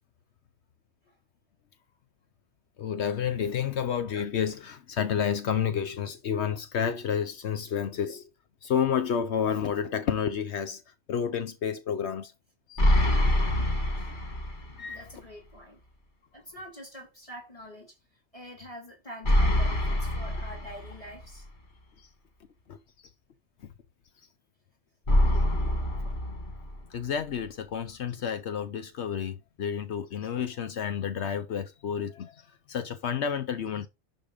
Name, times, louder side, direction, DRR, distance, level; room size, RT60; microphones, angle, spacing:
voice 1, 2.8-8.3 8.6-10.8 11.1-12.3 12.7-13.1 14.8-15.0 22.0-22.1 22.7-22.8 23.6-23.7 26.9-33.9, left 8 dB, 80° left, 1.1 m, -30 dB
sound 1, 12.8-14.8 15.1-15.2 19.2-21.2 25.1-27.0, left 1 dB, 45° left, 1.8 m, -25 dB
voice 2, 14.9-15.8 16.3-18.0 18.3-21.5, equal, 30° left, 4.2 m, -45 dB
11.5 x 4.2 x 5.1 m
omnidirectional pair, 1.1 m